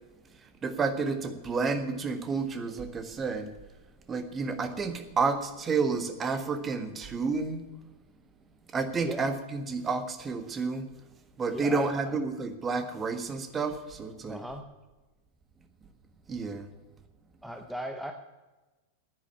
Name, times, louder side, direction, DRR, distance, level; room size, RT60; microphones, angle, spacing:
voice 1, 0.6-3.5 4.1-7.6 8.7-10.9 11.4-14.4 16.3-16.7, right 4 dB, 20° right, 8 dB, 1.5 m, -30 dB
voice 2, 11.5-12.2 14.3-14.7 17.4-18.1, equal, ahead, 4 dB, 0.9 m, -37 dB
10.0 x 9.8 x 8.5 m, 1.2 s
figure-of-eight pair, 90°, 0 cm